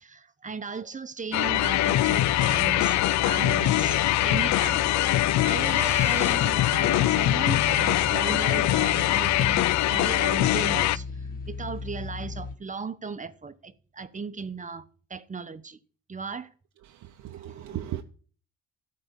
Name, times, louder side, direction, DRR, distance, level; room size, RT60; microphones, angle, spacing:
voice 1, 0.0-11.0 11.5-15.8 16.1-16.5 17.3-17.8, right 5 dB, 25° right, 0.9 m, -36 dB
sound 1, 1.3-11.0, left 15 dB, 70° left, 0.4 m, -23 dB
sound 2, 1.4-12.5, left 4 dB, 30° left, 1.3 m, -36 dB
sound 3, 5.1-6.3, left 1 dB, 10° left, 1.8 m, -42 dB
voice 2, 16.8-18.0, right 13 dB, 80° right, 0.8 m, -37 dB
13.0 x 4.3 x 6.9 m
cardioid pair, 90°, 30 cm